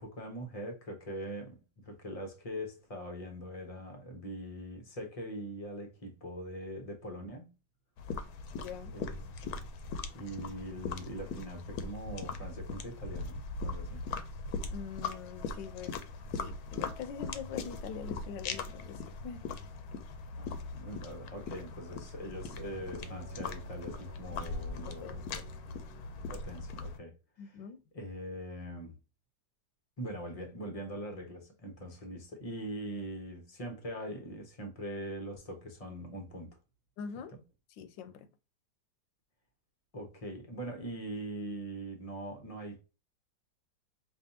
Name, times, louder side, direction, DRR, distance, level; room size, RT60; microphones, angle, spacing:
voice 1, 0.0-7.5 8.9-9.3 10.1-14.0 20.3-25.3 26.3-27.6 27.9-29.0 30.0-36.6 37.3-37.4 39.9-42.8, right 1 dB, 40° left, 0.5 m, -42 dB
sound 1, 8.0-27.0, left 4 dB, 70° left, 1.0 m, -40 dB
voice 2, 8.6-9.0 14.7-15.9 16.4-19.5 25.0-25.4 27.4-27.8 37.0-37.4 37.8-38.3, left 7 dB, 85° left, 1.3 m, -44 dB
sound 2, 22.0-26.6, right 1 dB, 85° right, 1.4 m, -55 dB
4.9 x 2.6 x 2.7 m
omnidirectional pair, 1.9 m